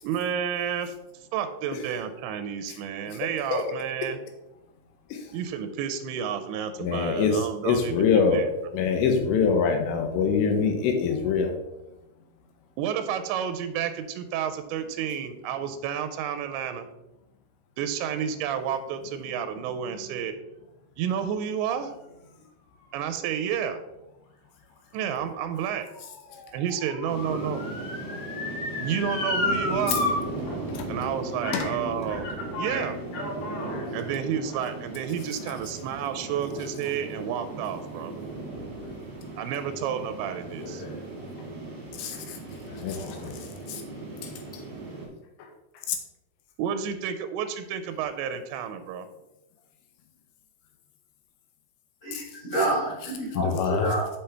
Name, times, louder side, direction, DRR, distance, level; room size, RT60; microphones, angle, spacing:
voice 1, 0.0-1.0 1.3-4.2 5.3-8.5 12.8-16.9 17.8-20.4 21.0-21.9 22.9-23.8 24.9-25.9 26.5-27.6 28.8-30.0 30.9-32.3 32.6-33.0 33.9-38.1 39.4-40.8 46.6-49.1, right 8 dB, 90° right, 9 dB, 2.9 m, -30 dB
voice 2, 6.8-8.4 8.7-11.5 27.3-27.4 30.7-30.9 31.5-31.7 33.7-33.9 40.6-40.9 42.0-42.4 42.7-43.3 43.7-43.8 45.9-46.0 52.1-52.2 53.4-53.9, left 6 dB, 80° left, 5 dB, 2.8 m, -25 dB
Motor vehicle (road) / Siren, 24.9-30.1 30.5-30.6 31.4-31.8 32.1-33.8 34.5-34.6, left 2 dB, 65° left, 3.0 m, -32 dB
sound 1, 27.1-45.1, right 2 dB, 50° right, 1.5 m, -37 dB
voice 3, 52.0-54.1, right 2 dB, 35° left, -8 dB, 1.2 m, -28 dB
6.9 x 5.6 x 3.3 m, 0.94 s
omnidirectional pair, 5.1 m